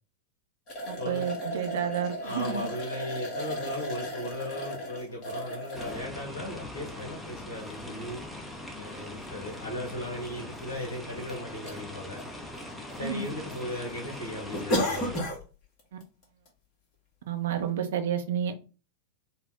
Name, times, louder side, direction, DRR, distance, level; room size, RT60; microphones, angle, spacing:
sound 1, 0.7-6.0 6.7-6.8 8.4-8.5 8.8-8.9 9.9-10.0 10.2-10.3 10.9-11.4 11.7-11.8 12.2-12.9 13.2-13.6 13.9-14.0 14.5-15.4 15.8-16.0 16.5-16.6, equal, 40° left, 1.4 m, -34 dB
voice 1, 0.9-2.7 13.0-13.3 15.9-16.0 17.3-18.6, right 8 dB, 60° right, 0.7 m, -30 dB
voice 2, 2.2-8.2 8.8-12.2 12.9-15.2, left 1 dB, 60° left, 1.2 m, -37 dB
sound 2, 5.7-15.2, left 1 dB, ahead, 0.8 m, -41 dB
4.2 x 2.2 x 3.7 m
figure-of-eight pair, 90°, 0 cm